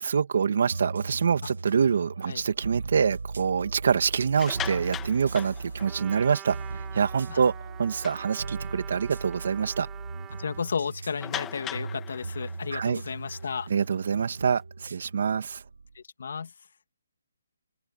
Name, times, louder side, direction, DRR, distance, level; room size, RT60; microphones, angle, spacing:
voice 1, 0.0-7.5 7.8-9.9 12.7-13.0 13.7-14.6 14.9-15.6, right 6 dB, 50° right, 2.4 m, -25 dB
sound 1, 0.7-16.0, right 3 dB, 80° right, 1.8 m, -38 dB
sound 2, 4.3-6.3 6.8-7.0 7.3-7.4 7.8-8.8 9.3-9.4 9.8-9.9 11.2-14.5, left 11 dB, 10° left, 2.3 m, -40 dB
Trumpet, 5.8-10.8, right 13 dB, 10° right, 4.1 m, -46 dB
voice 2, 10.4-13.7 15.9-16.5, left 6 dB, 55° left, 2.4 m, -33 dB
open air
hypercardioid pair, 175°, 0 cm